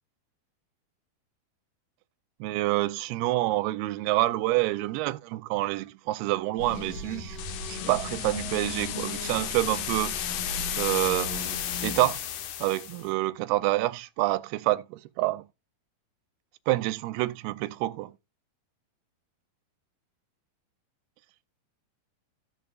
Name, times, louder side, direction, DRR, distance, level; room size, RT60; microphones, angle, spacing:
voice 1, 2.4-7.4 7.7-10.2 10.8-12.2 12.6-15.5 16.7-18.1, right 18 dB, 90° right, 2.6 m, -27 dB
sound 1, 6.6-12.6, left 2 dB, 55° left, 2.0 m, -38 dB
sound 2, 7.4-13.1, left 10 dB, 90° left, 1.7 m, -34 dB
15.5 x 5.3 x 2.3 m
omnidirectional pair, 4.4 m